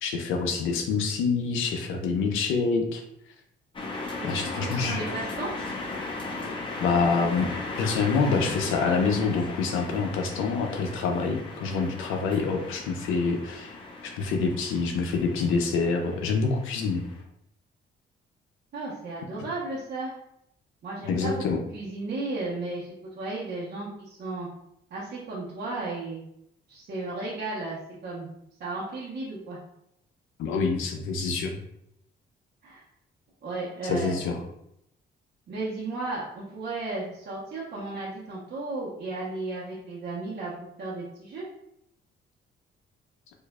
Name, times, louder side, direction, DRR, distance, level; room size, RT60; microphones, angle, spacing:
voice 1, 0.0-3.0 4.2-5.0 6.8-7.5 7.8-13.8 14.0-17.0 21.1-21.6 30.4-31.6 33.8-34.4, left 4 dB, 90° left, 3 dB, 0.5 m, -26 dB
sound 1, 3.7-17.2, left 3 dB, 25° left, 0.8 m, -37 dB
voice 2, 4.3-5.5 18.7-20.1 20.8-21.4 21.7-24.5 24.9-26.2 26.7-27.8 28.0-28.3 28.6-29.6 32.6-32.8 33.4-34.1 35.5-41.4, right 2 dB, 60° right, -7 dB, 0.9 m, -34 dB
4.5 x 2.4 x 2.3 m, 0.77 s
cardioid pair, 90°, 20 cm